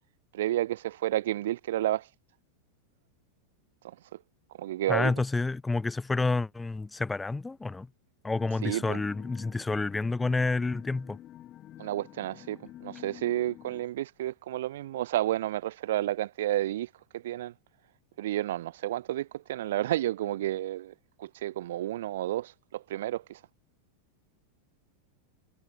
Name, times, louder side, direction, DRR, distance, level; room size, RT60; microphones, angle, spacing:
voice 1, 0.3-2.1 3.8-3.9 4.6-5.1 8.6-9.0 11.8-17.5 18.2-20.9 21.2-23.4, right 14 dB, 55° right, 0.9 m, -31 dB
voice 2, 4.9-7.9 8.2-11.2, left 3 dB, 10° left, 0.7 m, -29 dB
sound 1, 8.3-13.8, left 13 dB, 30° left, 3.2 m, -49 dB
figure-of-eight pair, 90°, 0 cm